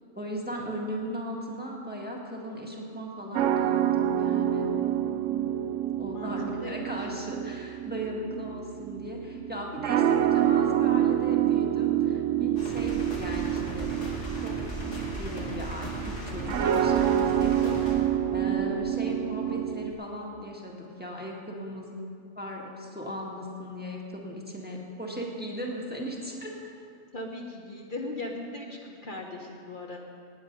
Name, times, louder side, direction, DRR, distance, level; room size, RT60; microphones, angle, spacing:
voice 1, 0.2-4.7 5.1-5.5 6.0-14.1 14.4-22.0 22.4-26.8, equal, 10° right, -2 dB, 1.7 m, -37 dB
sound 1, 3.3-19.9, right 11 dB, 85° right, 0.9 m, -27 dB
voice 2, 6.6-7.1 27.1-30.0, left 2 dB, 45° left, 0 dB, 1.2 m, -38 dB
sound 2, 12.6-17.9, left 1 dB, 85° left, 3.0 m, -37 dB
18.5 x 9.4 x 5.3 m, 2.3 s
omnidirectional pair, 1.2 m